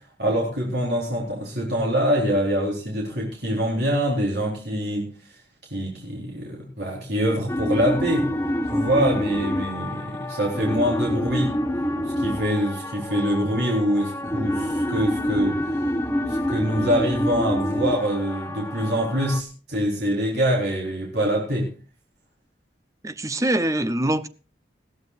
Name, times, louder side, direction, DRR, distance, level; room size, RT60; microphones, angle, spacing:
voice 1, 0.2-5.1 5.7-8.3 8.7-11.5 12.2-15.6 16.3-21.7, equal, 65° right, 4.1 m, -24 dB
sound 1, 7.5-19.4, equal, 15° left, 1.0 m, -27 dB
voice 2, 23.0-24.3, right 1 dB, 15° right, 0.7 m, -23 dB
20.5 x 15.0 x 2.5 m
head